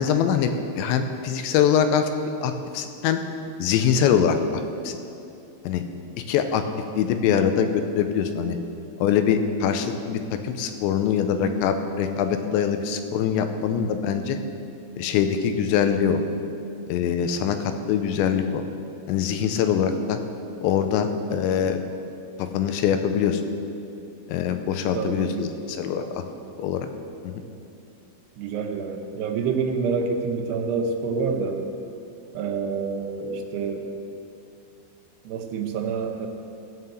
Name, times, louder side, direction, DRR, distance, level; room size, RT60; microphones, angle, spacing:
voice 1, 0.0-2.1 2.4-3.2 3.6-5.0 5.6-5.8 6.3-6.6 7.0-8.6 9.0-14.4 15.0-16.2 16.9-17.6 17.9-18.6 19.1-20.2 20.6-21.8 22.4-23.4 24.3-26.2 26.6-26.9 27.2-27.3, left 8 dB, 85° left, 7 dB, 3.0 m, -23 dB
voice 2, 24.9-25.5 25.9-26.2 28.4-31.6 32.3-33.9 35.3-36.3, right 5 dB, 75° right, 2 dB, 2.9 m, -27 dB
16.5 x 5.8 x 7.9 m, 2.6 s
omnidirectional pair, 5.2 m